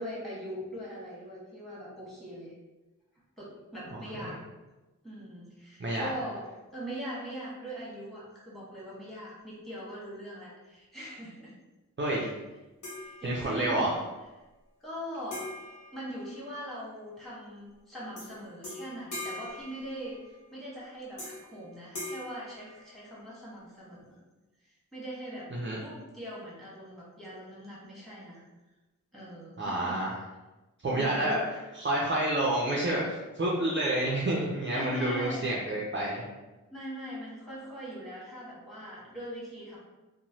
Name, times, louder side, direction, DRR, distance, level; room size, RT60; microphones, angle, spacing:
voice 1, 0.0-2.5 3.4-4.4 5.0-11.5 12.9-13.9 14.8-15.5 15.9-24.2 24.6-25.5 25.8-28.4 29.1-30.0 31.0-31.4 34.7-35.5 36.7-39.8, equal, ahead, -7 dB, 1.3 m, -41 dB
voice 2, 12.0-12.3 13.2-13.9 25.5-25.8 29.6-30.1 30.8-31.4 31.8-36.2, right 1 dB, 40° right, -4 dB, 0.5 m, -29 dB
sound 1, 12.8-13.8 15.3-16.9 18.2-18.3 18.6-20.5 21.2-21.6 21.9-23.4, left 1 dB, 65° left, 0.9 m, -42 dB
3.0 x 2.1 x 2.7 m, 1.1 s
wide cardioid pair, 45°, 32 cm